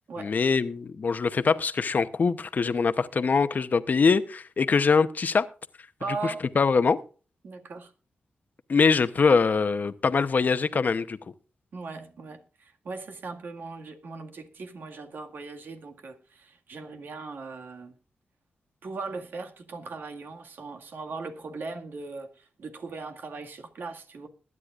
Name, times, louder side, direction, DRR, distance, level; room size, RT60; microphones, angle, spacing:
voice 1, 0.2-5.4 6.2-7.0 8.7-11.2, left 5 dB, 55° left, 0.9 m, -23 dB
voice 2, 6.0-6.5 7.4-7.9 11.7-17.9 18.8-24.3, right 3 dB, 70° right, 1.9 m, -39 dB
21.5 x 9.7 x 2.5 m
cardioid pair, 65°, 4 cm